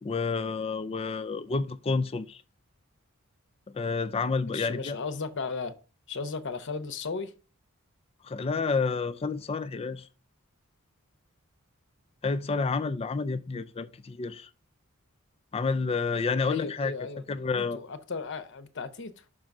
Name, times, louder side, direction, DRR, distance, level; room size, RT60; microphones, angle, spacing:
voice 1, 0.0-2.4 3.7-5.0 8.2-10.1 12.2-14.5 15.5-16.9 17.3-17.8, left 4 dB, 25° left, 0.4 m, -29 dB
voice 2, 4.5-5.8 6.1-7.3 16.5-17.2 17.5-19.2, left 4 dB, 55° left, 0.8 m, -35 dB
6.1 x 3.9 x 5.9 m
head